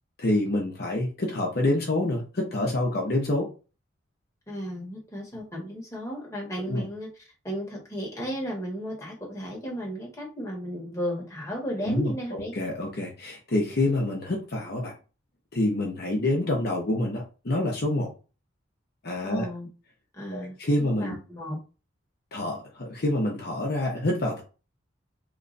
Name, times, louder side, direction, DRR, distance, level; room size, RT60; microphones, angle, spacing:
voice 1, 0.2-3.5 6.7-6.9 11.9-14.9 15.5-18.1 19.0-19.5 20.3-21.2 22.3-24.4, left 1 dB, 50° left, 0 dB, 0.8 m, -27 dB
voice 2, 4.5-7.1 7.4-12.5 19.2-19.7 20.1-21.6, equal, 15° left, -3 dB, 1.2 m, -34 dB
3.0 x 2.3 x 3.9 m, 0.33 s
head